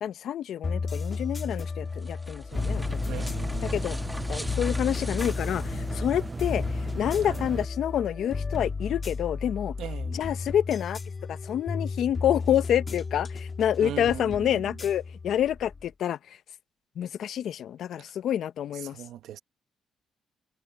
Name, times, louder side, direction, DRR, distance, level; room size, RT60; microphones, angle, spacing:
voice 1, 0.0-3.2 3.6-4.0 4.3-6.6 6.9-9.7 10.1-11.0 11.3-16.2 17.0-19.0, left 10 dB, 70° left, 1.0 m, -28 dB
sound 1, 0.6-15.9, left 4 dB, 35° left, 1.8 m, -33 dB
sound 2, 1.5-6.5, equal, 5° right, 2.3 m, -42 dB
sound 3, 2.5-7.7, right 3 dB, 25° right, 0.5 m, -37 dB
voice 2, 3.0-3.8 7.2-7.4 9.8-10.2 13.8-14.7 18.7-19.4, right 12 dB, 80° right, 1.2 m, -39 dB
cardioid pair, 90°, 0 cm